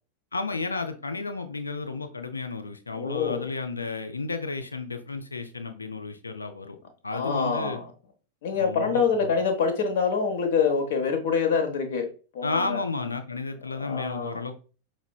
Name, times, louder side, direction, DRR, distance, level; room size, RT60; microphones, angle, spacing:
voice 1, 0.3-6.8 7.0-7.8 8.5-9.3 12.4-14.5, left 3 dB, 75° left, 7 dB, 0.4 m, -32 dB
voice 2, 2.9-3.5 7.1-7.9 8.4-12.1 12.3-12.8 13.8-14.4, left 5 dB, 55° left, 5 dB, 0.8 m, -25 dB
5.8 x 2.1 x 2.3 m, 0.37 s
figure-of-eight pair, 90°, 0 cm